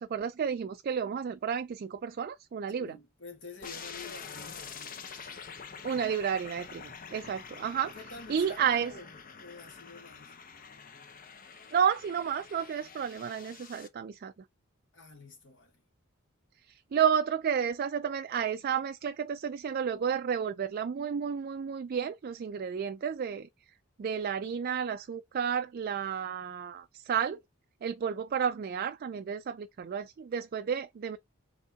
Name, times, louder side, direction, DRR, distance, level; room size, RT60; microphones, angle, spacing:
voice 1, 0.0-3.0 5.8-7.9 8.3-8.9 11.7-14.3 16.7-23.5 24.0-27.4 27.8-31.2, right 7 dB, 45° right, 0.3 m, -31 dB
voice 2, 2.8-5.1 5.9-6.1 7.8-10.4 14.9-15.8, left 3 dB, 60° left, 1.8 m, -49 dB
sound 1, 3.6-13.9, left 6 dB, 40° left, 0.7 m, -46 dB
4.1 x 3.6 x 3.5 m
head